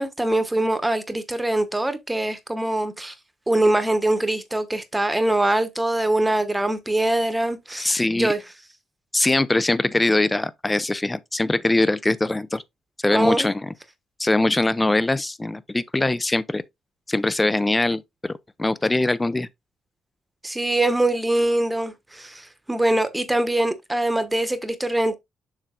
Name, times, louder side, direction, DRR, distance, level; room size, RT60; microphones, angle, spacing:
voice 1, 0.0-3.1 3.5-8.4 13.1-13.5 20.4-25.2, right 1 dB, 10° right, 1.1 m, -23 dB
voice 2, 7.8-8.3 9.1-12.6 13.0-13.7 14.2-16.6 17.1-18.3 18.6-19.5, left 2 dB, 15° left, 0.6 m, -22 dB
7.3 x 6.6 x 2.4 m
cardioid pair, 90°, 0 cm